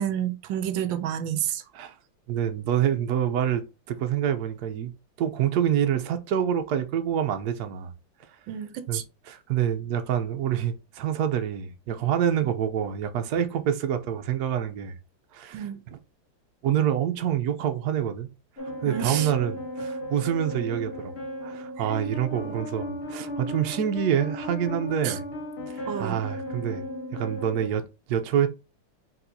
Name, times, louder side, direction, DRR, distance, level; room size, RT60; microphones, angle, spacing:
voice 1, 0.0-1.6 8.5-9.0 12.4-12.5 15.5-15.8 18.9-19.3 22.4-22.6 25.0-25.2 25.9-26.2, right 10 dB, 85° right, 1.4 m, -30 dB
voice 2, 2.3-4.9 5.2-7.9 8.9-14.9 15.3-16.0 16.6-18.3 18.6-21.1 21.4-25.3 25.7-28.5, right 9 dB, 65° right, 1.1 m, -27 dB
sound 1, 18.6-27.7, equal, 50° left, 0.8 m, -36 dB
4.4 x 4.1 x 2.6 m
omnidirectional pair, 2.1 m